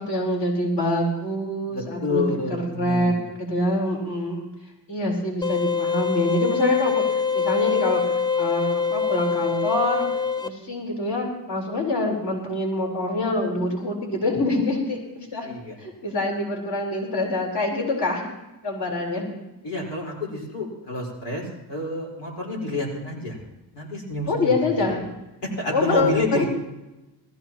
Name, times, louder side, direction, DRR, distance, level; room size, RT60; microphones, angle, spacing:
voice 1, 0.0-4.5 4.9-10.1 10.4-15.5 15.8-18.3 18.6-19.3 24.3-25.0 25.7-26.4, left 2 dB, 60° left, -1 dB, 4.4 m, -25 dB
voice 2, 1.7-3.2 15.4-15.8 19.6-23.4 23.7-24.5 24.9-25.0 25.4-26.4, left 2 dB, 85° left, -2 dB, 4.7 m, -29 dB
sound 1, 5.4-10.5, left 6 dB, 10° left, 0.5 m, -24 dB
20.5 x 14.5 x 3.0 m, 1.0 s
cardioid pair, 90°, 41 cm